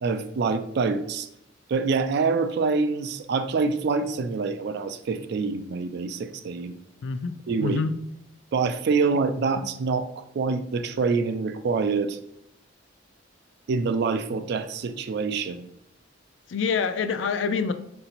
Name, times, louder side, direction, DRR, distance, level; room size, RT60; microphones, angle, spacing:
voice 1, 0.0-1.3 1.7-6.7 7.5-7.8 8.5-12.2 13.7-15.6, right 4 dB, 60° right, 10 dB, 0.4 m, -26 dB
voice 2, 7.0-7.9 9.6-9.7 16.5-17.7, left 5 dB, 65° left, 9 dB, 0.4 m, -26 dB
3.9 x 2.7 x 4.4 m, 0.75 s
head